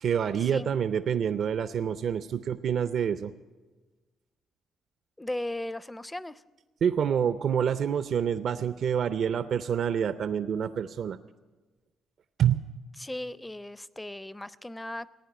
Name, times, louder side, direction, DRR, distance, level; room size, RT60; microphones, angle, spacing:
voice 1, 0.0-3.3 6.8-11.2 12.4-12.6, right 8 dB, 65° right, 12 dB, 0.5 m, -27 dB
voice 2, 5.2-6.4 13.0-15.3, left 1 dB, 10° left, 18 dB, 0.5 m, -37 dB
16.0 x 9.4 x 9.3 m, 1.2 s
cardioid pair, 90°, 0 cm